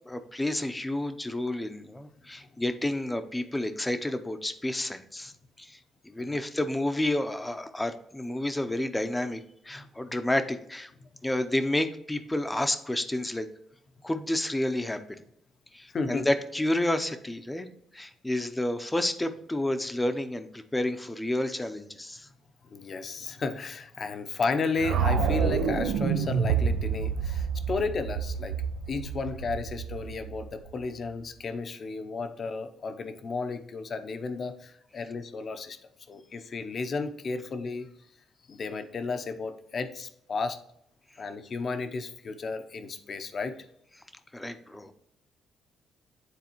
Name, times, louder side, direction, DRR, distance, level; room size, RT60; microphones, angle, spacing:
voice 1, 0.1-5.3 5.6-5.8 6.0-10.9 11.2-13.5 14.0-15.2 15.7-17.7 17.9-22.3 44.3-44.9, left 1 dB, 10° left, 9 dB, 0.7 m, -30 dB
voice 2, 15.9-16.3 22.6-35.8 36.1-37.9 38.5-40.6 41.2-43.7, left 4 dB, 50° left, 8 dB, 0.7 m, -33 dB
sound 1, 24.8-30.9, right 6 dB, 85° right, 0.6 m, -28 dB
9.5 x 4.0 x 3.0 m, 0.73 s
cardioid pair, 90°, 0 cm